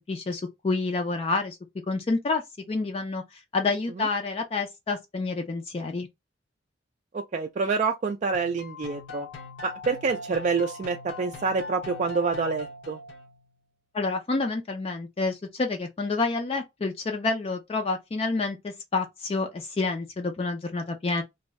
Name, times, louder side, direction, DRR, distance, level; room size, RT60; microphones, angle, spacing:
voice 1, 0.0-1.6 1.9-2.4 2.7-6.1 13.9-21.2, left 3 dB, 30° left, 0.4 m, -28 dB
voice 2, 7.1-9.3 9.6-13.0, right 4 dB, 40° right, 0.3 m, -27 dB
sound 1, 8.3-13.5, left 2 dB, 65° left, 0.7 m, -40 dB
2.6 x 2.3 x 3.1 m
head